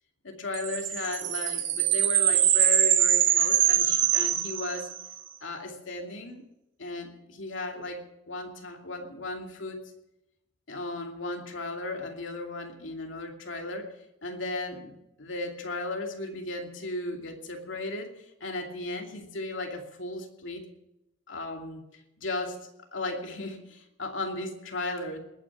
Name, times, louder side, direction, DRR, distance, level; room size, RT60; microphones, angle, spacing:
voice 1, 0.2-4.9 5.4-6.4 6.8-9.8 10.7-13.9 14.2-20.7 21.3-21.8 22.2-22.6 22.9-25.2, left 2 dB, 70° left, 3 dB, 2.6 m, -35 dB
sound 1, 0.5-5.1, right 11 dB, 65° right, 1.6 m, -23 dB
20.0 x 9.5 x 7.3 m, 0.88 s
head